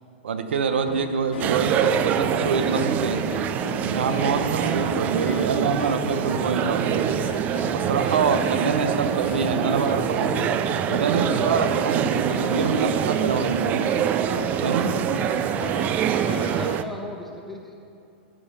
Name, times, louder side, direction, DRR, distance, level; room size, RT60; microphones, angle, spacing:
voice 1, 0.2-3.3 3.8-7.2 7.7-10.4 10.9-13.8 14.6-15.0, right 5 dB, 90° right, 8 dB, 1.0 m, -25 dB
sound 1, 0.9-16.8, left 7 dB, 60° left, 0.6 m, -37 dB
sound 2, 1.4-16.8, right 9 dB, 25° right, 0.4 m, -25 dB
voice 2, 16.1-17.7, left 1 dB, ahead, -1 dB, 1.1 m, -37 dB
13.0 x 5.6 x 5.5 m, 2.6 s
hypercardioid pair, 150°, 6 cm